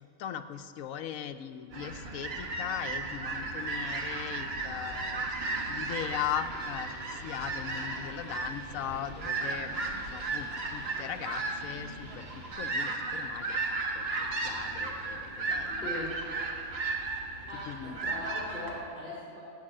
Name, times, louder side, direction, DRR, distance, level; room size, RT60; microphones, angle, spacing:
voice 1, 0.0-5.3 5.7-6.9 7.2-9.7 10.1-12.3 12.5-13.6 13.9-15.9 17.7-18.0, left 10 dB, 70° left, 9 dB, 1.0 m, -39 dB
sound 1, 1.7-18.8, right 3 dB, 45° right, 1.4 m, -35 dB
sound 2, 6.0-12.5, equal, 5° right, 2.6 m, -55 dB
voice 2, 17.5-19.4, left 1 dB, 35° left, -8 dB, 2.7 m, -39 dB
14.5 x 5.6 x 8.6 m, 2.4 s
omnidirectional pair, 1.5 m